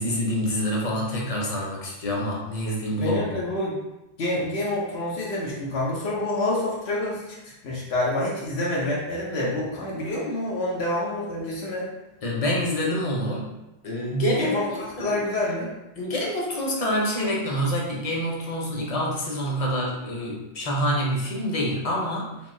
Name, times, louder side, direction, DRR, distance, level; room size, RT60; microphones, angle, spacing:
voice 1, 0.0-3.4 12.2-13.5 13.8-15.2 16.0-22.5, equal, 40° left, -3 dB, 0.7 m, -27 dB
voice 2, 2.9-3.8 4.2-11.9 14.4-15.7, left 1 dB, 80° left, -5 dB, 1.0 m, -27 dB
3.5 x 2.6 x 2.6 m, 0.95 s
omnidirectional pair, 1.1 m